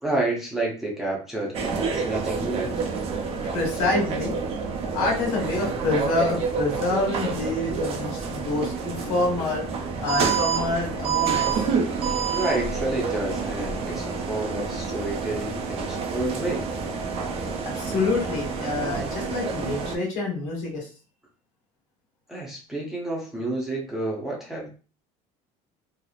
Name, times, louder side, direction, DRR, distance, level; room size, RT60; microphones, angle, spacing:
voice 1, 0.0-2.7 12.3-16.6 17.3-17.6 22.3-24.7, right 2 dB, ahead, -4 dB, 0.7 m, -29 dB
sound 1, 1.5-20.0, right 5 dB, 40° right, 0.4 m, -28 dB
voice 2, 3.5-4.3 4.9-11.6 17.6-20.9, left 3 dB, 80° left, -1 dB, 1.3 m, -27 dB
2.9 x 2.0 x 2.4 m, 0.35 s
cardioid pair, 140°, 15 cm